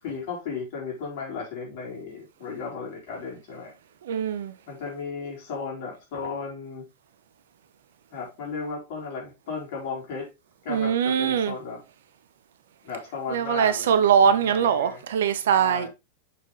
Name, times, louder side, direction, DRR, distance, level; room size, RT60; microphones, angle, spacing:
voice 1, 0.0-3.7 4.7-6.9 8.1-10.3 10.6-11.8 12.8-15.0 15.6-15.9, left 5 dB, 50° left, 4.2 m, -35 dB
voice 2, 4.0-4.5 10.7-11.5 13.3-15.9, right 7 dB, 60° right, 0.9 m, -22 dB
6.8 x 6.4 x 3.3 m
figure-of-eight pair, 90°, 0 cm